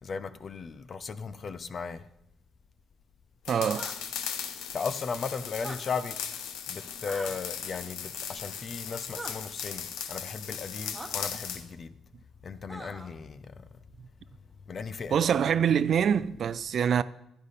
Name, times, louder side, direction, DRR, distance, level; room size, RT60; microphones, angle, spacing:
voice 1, 0.0-2.0 4.7-6.2 6.7-11.9 12.4-13.6 14.7-15.2, left 5 dB, 45° left, 0.7 m, -36 dB
sound 1, 3.4-11.6, left 8 dB, 90° left, 0.9 m, -38 dB
voice 2, 3.5-3.9 15.1-17.0, right 8 dB, 60° right, 0.4 m, -25 dB
sound 2, 3.7-4.0 5.5-5.8 7.1-7.3 9.1-9.3 10.9-11.1 12.7-13.1, right 2 dB, 10° right, 1.3 m, -41 dB
12.5 x 10.0 x 4.2 m
cardioid pair, 90°, 0 cm